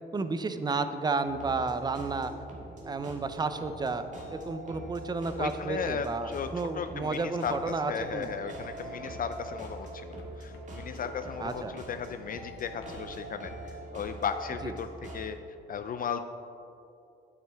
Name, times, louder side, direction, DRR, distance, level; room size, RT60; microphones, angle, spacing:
voice 1, 0.1-2.3 2.8-4.0 4.3-8.3 11.4-11.7 14.6-14.7, right 4 dB, 20° right, 10 dB, 0.5 m, -32 dB
sound 1, 1.3-15.3, right 2 dB, 40° right, 1.7 m, -44 dB
sound 2, 4.7-6.5 6.9-7.2 7.5-7.8 8.1-12.2 12.6-13.1, left 3 dB, 80° left, 1.1 m, -55 dB
voice 2, 5.4-15.4 15.7-16.2, left 7 dB, 45° left, 9 dB, 0.4 m, -36 dB
9.1 x 8.2 x 3.5 m, 2.7 s
cardioid pair, 100°, 20 cm